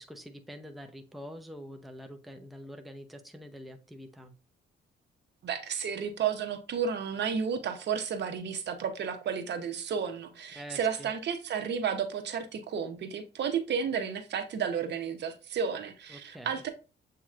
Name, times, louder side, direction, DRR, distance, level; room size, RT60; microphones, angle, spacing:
voice 1, 0.0-4.3 10.6-11.1 16.1-16.6, equal, ahead, 0.6 m, -45 dB
voice 2, 5.4-16.7, right 7 dB, 60° right, 0.8 m, -32 dB
7.4 x 2.8 x 2.4 m
cardioid pair, 90°, 20 cm